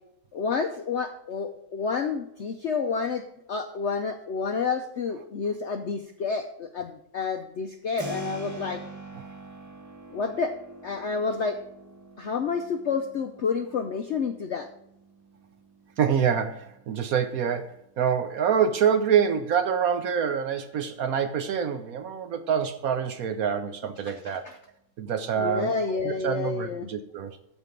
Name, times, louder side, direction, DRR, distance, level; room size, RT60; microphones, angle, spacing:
voice 1, 0.3-3.2 3.5-8.8 10.1-10.5 10.8-11.6 12.2-14.7 24.2-24.6 25.3-26.9, left 5 dB, 65° left, 7 dB, 0.6 m, -29 dB
Keyboard (musical), 8.0-18.7, right 2 dB, 20° right, 0.5 m, -45 dB
voice 2, 16.0-24.4 25.0-27.4, right 7 dB, 65° right, 10 dB, 1.0 m, -26 dB
13.5 x 4.5 x 5.2 m, 0.77 s
omnidirectional pair, 1.9 m